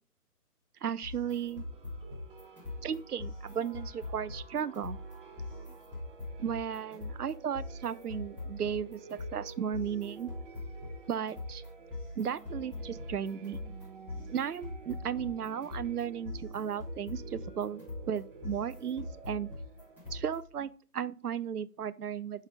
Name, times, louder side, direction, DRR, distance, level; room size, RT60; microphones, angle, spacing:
voice 1, 0.8-1.6 2.8-5.0 6.4-10.3 11.1-11.6 12.2-13.6 14.3-19.5 20.1-22.5, right 8 dB, 70° right, 0.6 m, -35 dB
sound 1, 1.0-20.6, left 2 dB, 5° left, 2.3 m, -43 dB
sound 2, 1.2-20.2, right 5 dB, 35° right, 1.2 m, -52 dB
5.6 x 5.5 x 4.8 m
figure-of-eight pair, 145°, 47 cm